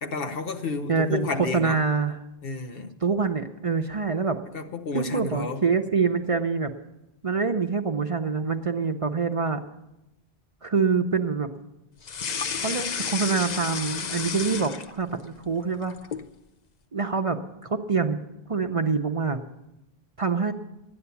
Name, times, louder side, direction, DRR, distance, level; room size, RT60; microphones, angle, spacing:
voice 1, 0.0-1.8 2.4-3.0 4.5-5.6, left 3 dB, 65° left, 1.1 m, -31 dB
voice 2, 0.9-2.2 3.0-4.4 4.9-6.7 7.2-9.6 10.6-11.5 12.5-16.0 16.9-18.2 18.5-19.4 20.2-20.5, right 5 dB, 40° right, 0.6 m, -25 dB
sound 1, 12.0-15.2 15.6-16.3, left 6 dB, 50° left, 0.7 m, -31 dB
12.5 x 9.9 x 6.9 m
omnidirectional pair, 1.0 m